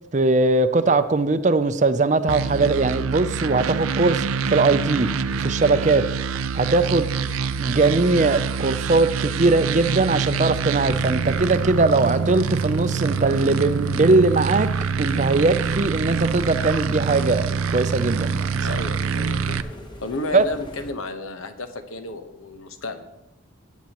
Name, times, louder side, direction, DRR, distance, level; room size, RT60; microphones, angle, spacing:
voice 1, 0.1-5.1 5.4-6.0 6.5-7.1 7.6-14.7 15.0-18.8 20.3-20.4, right 3 dB, 35° right, 0.5 m, -20 dB
sound 1, 2.3-19.6, right 5 dB, 90° right, 0.5 m, -25 dB
sound 2, 11.2-20.9, left 1 dB, 20° left, 1.1 m, -42 dB
voice 2, 18.6-19.6 20.0-23.0, left 2 dB, 80° left, 1.1 m, -33 dB
19.0 x 8.3 x 3.0 m
head